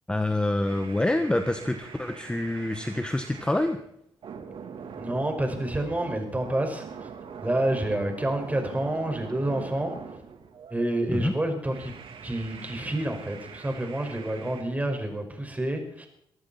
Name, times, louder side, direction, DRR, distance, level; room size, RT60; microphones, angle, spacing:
voice 1, 0.1-3.8 11.1-11.3, left 1 dB, 10° left, 7 dB, 1.6 m, -26 dB
sound 1, 0.7-3.8 4.2-10.9 11.6-14.6, right 6 dB, 70° right, 3.4 m, -43 dB
voice 2, 5.0-7.1 7.4-9.9 10.7-11.9 12.2-16.1, right 1 dB, 15° right, 4 dB, 5.6 m, -28 dB
23.5 x 14.0 x 4.4 m, 0.71 s
cardioid pair, 85°, 9 cm